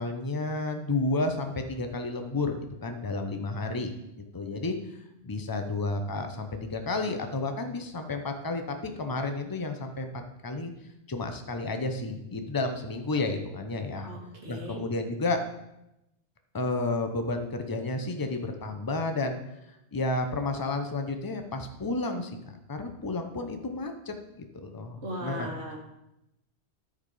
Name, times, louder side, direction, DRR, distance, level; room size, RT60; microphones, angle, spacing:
voice 1, 0.0-3.9 4.3-5.0 5.2-10.1 10.4-10.7 11.1-14.1 14.5-15.4 16.5-19.4 19.9-25.5, left 2 dB, 20° left, 6 dB, 0.8 m, -31 dB
voice 2, 14.0-14.8 25.0-25.8, right 1 dB, 80° right, -1 dB, 2.1 m, -38 dB
13.0 x 4.6 x 4.9 m, 0.88 s
omnidirectional pair, 1.1 m